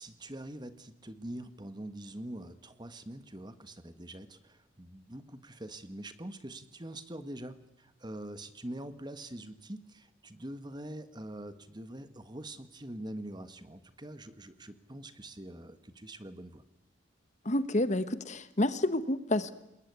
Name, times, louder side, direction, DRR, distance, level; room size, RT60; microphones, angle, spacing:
voice 1, 0.0-16.6, right 1 dB, 25° right, 12 dB, 1.5 m, -44 dB
voice 2, 17.4-19.5, left 1 dB, 40° left, 13 dB, 1.3 m, -29 dB
28.5 x 21.0 x 9.4 m, 0.88 s
head